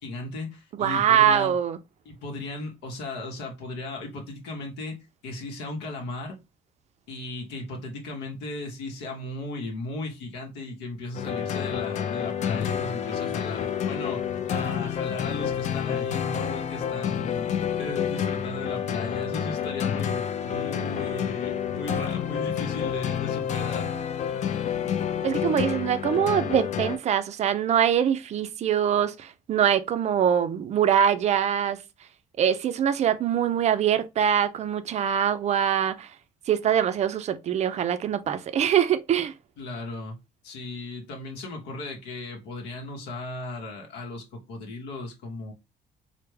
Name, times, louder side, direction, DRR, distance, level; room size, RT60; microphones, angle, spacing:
voice 1, 0.0-1.6 2.0-4.9 5.2-6.4 7.1-23.9 39.6-40.2 40.4-45.5, left 2 dB, 85° left, 0.8 m, -36 dB
voice 2, 0.8-1.8 25.2-31.8 32.4-36.1 36.5-39.3, right 9 dB, 40° right, 0.4 m, -23 dB
sound 1, 11.1-27.0, left 8 dB, 45° left, 0.4 m, -29 dB
3.2 x 2.1 x 3.1 m
cardioid pair, 110°, 17 cm